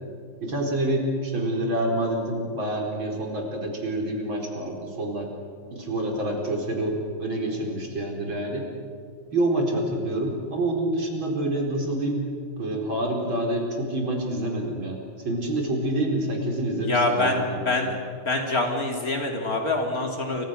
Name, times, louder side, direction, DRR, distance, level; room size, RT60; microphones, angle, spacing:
voice 1, 0.4-5.3 5.7-8.6 9.3-12.2 12.6-15.0 15.2-17.7, right 1 dB, 70° right, 1 dB, 5.3 m, -27 dB
voice 2, 16.8-18.0 18.3-20.4, left 2 dB, 45° left, 2 dB, 3.7 m, -25 dB
29.5 x 26.0 x 6.6 m, 2.4 s
omnidirectional pair, 2.3 m